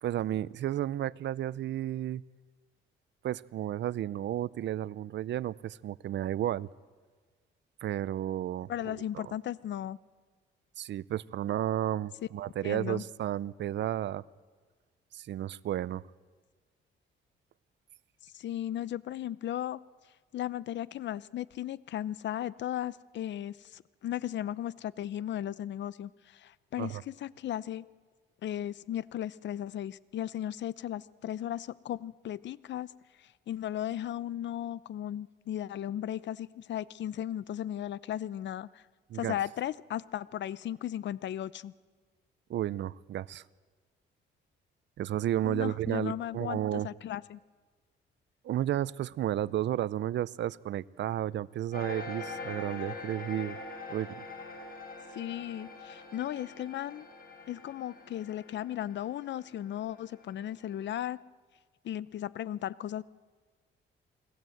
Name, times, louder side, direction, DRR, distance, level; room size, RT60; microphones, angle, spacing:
voice 1, 0.0-2.2 3.2-6.7 7.8-9.3 10.8-14.2 15.1-16.0 26.8-27.0 39.1-39.4 42.5-43.4 45.0-46.9 48.4-53.6 53.9-54.2, right 12 dB, 65° right, 0.6 m, -32 dB
voice 2, 8.7-10.0 12.6-13.0 18.3-19.8 20.3-27.9 28.4-32.9 33.2-38.8 39.1-41.7 45.4-47.4 55.1-57.0 57.5-61.2 61.8-63.0, left 11 dB, 65° left, 0.7 m, -36 dB
sound 1, 51.7-60.7, left 3 dB, 50° left, 6.6 m, -44 dB
28.5 x 20.0 x 7.9 m
cardioid pair, 90°, 20 cm